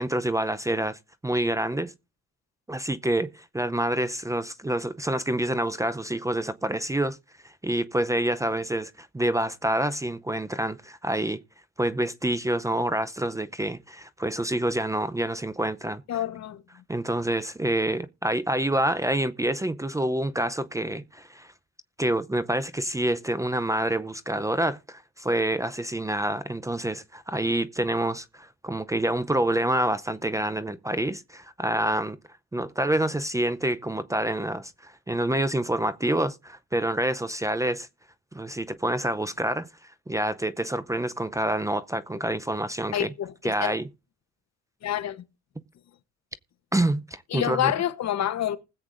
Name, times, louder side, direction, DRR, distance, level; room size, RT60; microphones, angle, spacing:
voice 1, 0.0-1.9 2.7-7.2 7.4-11.4 11.8-16.0 16.9-21.5 22.0-32.2 32.5-37.9 38.3-39.7 40.1-43.1 43.4-43.9 46.7-47.7, right 1 dB, 10° right, 0.5 m, -27 dB
voice 2, 16.1-16.6 42.9-43.7 44.8-45.2 47.3-48.6, left 11 dB, 60° left, 1.0 m, -28 dB
20.0 x 8.0 x 2.5 m
cardioid pair, 90°, 30 cm